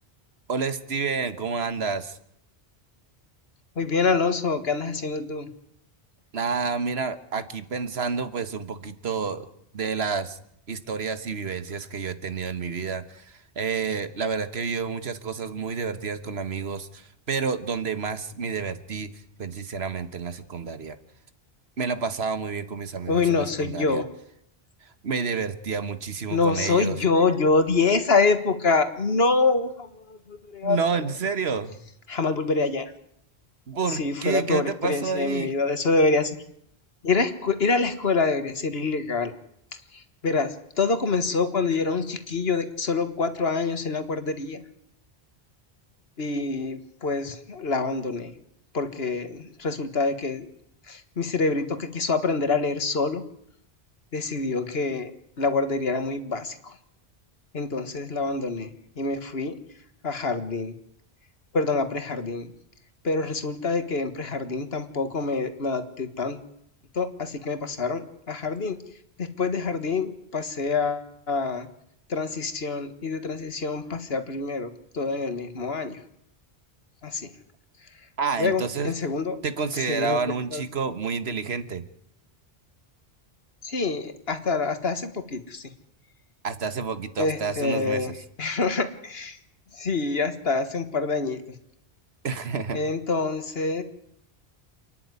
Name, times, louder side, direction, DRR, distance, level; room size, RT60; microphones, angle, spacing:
voice 1, 0.5-2.2 6.3-9.4 9.7-10.4 10.7-19.1 19.4-20.9 21.8-24.0 25.0-27.0 30.6-31.8 33.7-35.5 78.2-78.9 79.4-81.8 86.4-88.1 92.2-92.8, right 5 dB, 75° right, 11 dB, 1.6 m, -29 dB
voice 2, 3.8-5.5 23.1-24.1 26.3-30.8 32.1-32.9 33.9-36.4 37.0-39.3 39.9-44.6 46.2-48.3 48.7-50.5 50.9-53.2 54.1-55.1 55.4-56.8 57.5-58.7 59.0-59.6 60.0-60.7 61.5-62.5 63.0-66.4 66.9-68.8 69.2-71.7 72.1-76.0 77.0-77.3 78.4-79.4 79.9-80.2 80.5-80.6 83.6-85.7 87.2-88.1 88.4-89.4 89.8-91.4 92.7-93.8, left 4 dB, 70° left, 10 dB, 1.8 m, -26 dB
28.0 x 10.5 x 9.6 m, 0.73 s
omnidirectional pair, 1.1 m